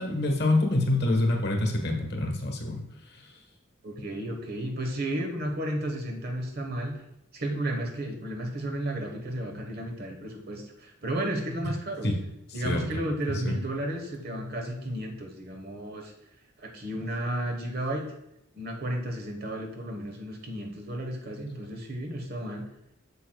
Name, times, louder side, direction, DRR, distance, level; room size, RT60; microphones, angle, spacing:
voice 1, 0.0-2.9 3.1-3.2 12.0-12.2 12.6-12.9 13.4-13.5, left 2 dB, 50° left, 2 dB, 1.2 m, -26 dB
voice 2, 3.8-7.0 7.3-12.1 12.5-16.1 16.6-18.1 18.5-22.6, right 1 dB, 50° right, 2 dB, 1.1 m, -33 dB
8.2 x 7.5 x 2.3 m, 0.83 s
head